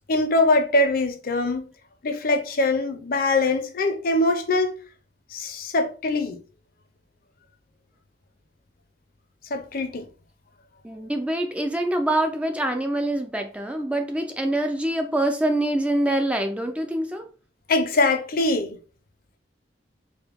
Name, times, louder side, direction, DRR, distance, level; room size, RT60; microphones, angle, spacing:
voice 1, 0.1-1.7 2.0-4.7 5.3-6.4 9.5-10.1 17.7-18.8, left 2 dB, 55° left, 0.6 m, -22 dB
voice 2, 10.8-17.2, right 1 dB, 5° right, 0.4 m, -25 dB
4.9 x 2.2 x 3.4 m
head